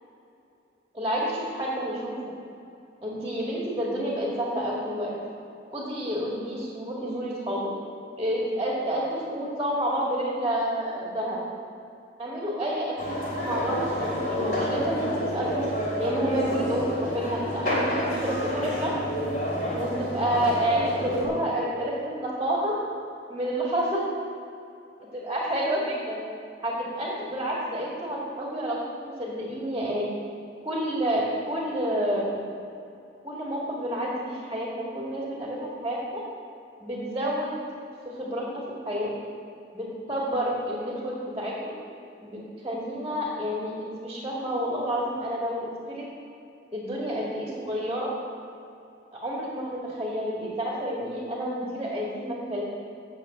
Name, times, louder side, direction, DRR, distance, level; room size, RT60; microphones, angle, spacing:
voice 1, 0.9-2.3 3.0-5.1 5.7-7.7 8.2-11.4 12.2-15.7 16.0-18.9 19.8-22.8 23.3-24.0 25.1-26.2 26.6-30.1 30.6-32.4 33.2-36.2 36.8-37.6 38.0-39.1 39.7-41.8 42.2-46.0 46.7-48.1 49.1-52.6, equal, 20° right, -5 dB, 1.9 m, -29 dB
sound 1, 13.0-21.3, equal, 50° left, 2.9 m, -29 dB
9.0 x 6.7 x 7.9 m, 2.6 s
head